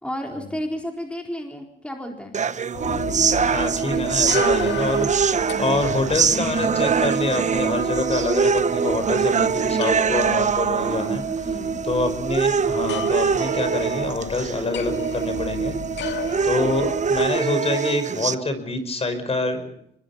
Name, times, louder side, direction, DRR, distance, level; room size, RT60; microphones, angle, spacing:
voice 1, 0.0-2.4 11.4-11.8, equal, 5° left, 2 dB, 4.2 m, -32 dB
sound 1, 2.3-18.4, right 6 dB, 35° right, 1.0 m, -23 dB
sound 2, 2.7-17.3, left 7 dB, 65° left, 2.3 m, -35 dB
voice 2, 3.5-11.2 11.8-15.8 16.4-19.7, left 2 dB, 30° left, 9 dB, 5.3 m, -26 dB
25.0 x 21.5 x 5.8 m, 0.73 s
cardioid pair, 90°, 20 cm